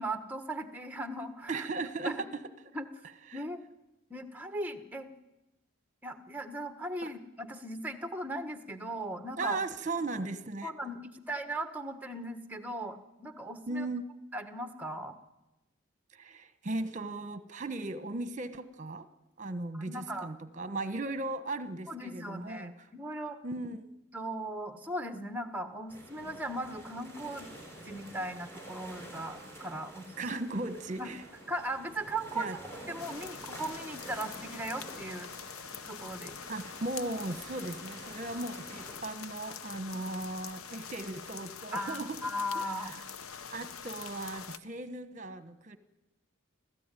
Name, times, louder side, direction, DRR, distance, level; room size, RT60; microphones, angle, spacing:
voice 1, 0.0-1.7 2.0-2.2 2.7-2.9 3.3-3.6 4.1-5.1 6.0-9.6 10.6-13.9 14.3-15.1 19.7-20.3 21.9-23.4 24.1-27.5 27.9-30.1 31.0-31.1 31.5-32.5 32.9-35.3 35.9-36.4 41.7-43.0, right 1 dB, 10° right, 7 dB, 1.3 m, -38 dB
voice 2, 1.5-2.4 3.3-3.4 7.0-7.1 9.4-10.7 13.7-14.0 16.1-19.1 19.4-22.9 23.4-23.9 30.2-31.2 32.3-32.6 36.5-42.2 42.5-42.6 42.9-43.0 43.5-45.8, right 2 dB, 35° right, 11 dB, 1.2 m, -37 dB
sound 1, 25.9-39.0, right 1 dB, 10° left, 6.2 m, -49 dB
sound 2, 33.0-44.6, left 7 dB, 90° left, 0.9 m, -45 dB
26.0 x 16.0 x 9.2 m, 1.0 s
head